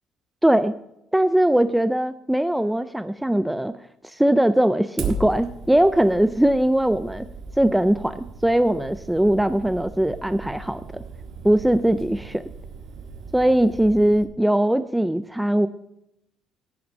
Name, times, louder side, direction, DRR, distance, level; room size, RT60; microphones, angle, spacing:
voice 1, 0.4-0.7 1.1-3.7 4.0-7.3 7.6-11.0 11.4-12.4 13.3-15.7, right 1 dB, 5° right, 12 dB, 0.4 m, -20 dB
Fire, 5.0-14.2, right 4 dB, 55° right, 1.6 m, -37 dB
11.5 x 8.7 x 5.3 m, 0.81 s
cardioid pair, 145°, 0 cm